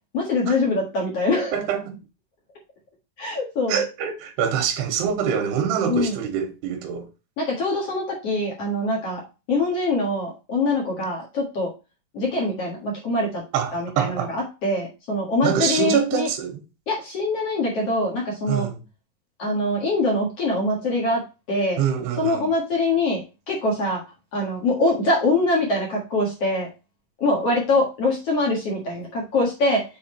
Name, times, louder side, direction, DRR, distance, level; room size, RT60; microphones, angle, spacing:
voice 1, 0.1-1.5 3.2-3.8 5.9-6.1 7.4-9.2 9.5-11.7 12.1-13.4 13.7-16.3 16.9-18.7 19.4-21.2 21.5-21.8 22.2-24.0 24.3-26.7 27.2-29.8, left 2 dB, 50° left, 2.1 m, -23 dB
voice 2, 1.5-2.0 3.7-7.1 13.5-14.4 15.4-16.6 18.5-18.8 21.8-22.5, right 8 dB, 90° right, 3.0 m, -25 dB
6.9 x 4.2 x 4.4 m
omnidirectional pair, 4.7 m